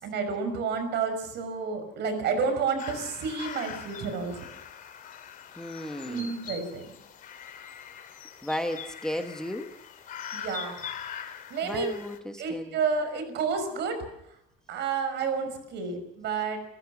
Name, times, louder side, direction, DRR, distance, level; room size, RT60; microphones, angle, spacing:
voice 1, 0.0-4.4 6.1-6.9 10.3-10.8 11.5-11.9 12.4-14.0 14.7-16.6, right 5 dB, 60° right, 9 dB, 5.9 m, -30 dB
sound 1, 2.8-12.2, left 8 dB, 45° left, 2.8 m, -42 dB
voice 2, 5.6-6.3 8.4-9.7 11.6-12.8, left 1 dB, 5° left, 5 dB, 1.3 m, -34 dB
30.0 x 15.0 x 6.1 m, 0.80 s
cardioid pair, 160°, 21 cm